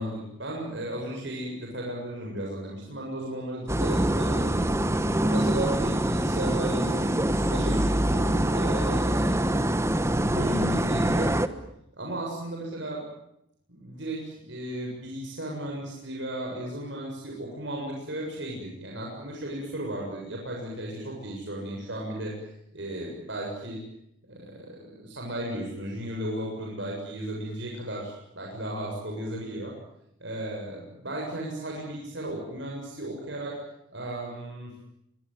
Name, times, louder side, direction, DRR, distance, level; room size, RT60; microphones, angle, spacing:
voice 1, 0.0-4.7 5.2-9.6 10.3-11.3 11.9-13.1 13.7-22.4 22.7-23.8 24.3-29.7 30.2-33.6 33.9-34.7, right 1 dB, 65° right, -1 dB, 7.5 m, -35 dB
sound 1, 3.7-11.5, right 1 dB, 15° right, 1.2 m, -25 dB
24.5 x 23.0 x 9.4 m, 0.77 s
head